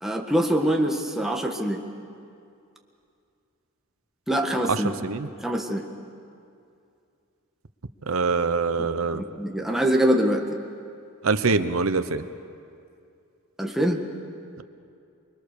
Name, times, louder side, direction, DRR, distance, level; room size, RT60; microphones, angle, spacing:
voice 1, 0.0-1.8 4.3-4.9 5.4-5.9 8.8-8.9 9.1-10.4 13.6-14.0, equal, ahead, 1 dB, 1.7 m, -24 dB
voice 2, 4.7-5.3 8.1-9.2 11.2-12.2, right 4 dB, 90° right, 10 dB, 0.9 m, -24 dB
29.0 x 21.5 x 6.8 m, 2.4 s
head